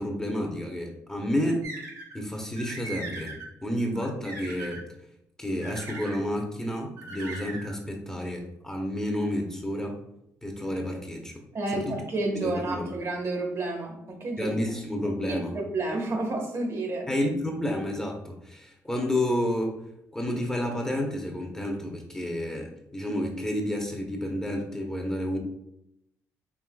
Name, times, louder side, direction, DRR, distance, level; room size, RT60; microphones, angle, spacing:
voice 1, 0.0-1.6 2.1-4.9 5.4-10.0 10.4-11.4 11.7-12.0 12.4-12.9 14.4-15.5 17.1-19.8 20.1-25.4, left 1 dB, 10° left, 1 dB, 0.8 m, -30 dB
sound 1, 1.6-2.2 2.6-3.5 4.0-4.8 5.6-6.2 7.0-7.7, right 3 dB, 80° right, 1.1 m, -39 dB
voice 2, 11.5-14.5 14.9-15.0 15.3-17.1, right 2 dB, 50° right, 2 dB, 1.0 m, -30 dB
4.7 x 3.3 x 2.3 m, 0.80 s
cardioid pair, 90°, 6 cm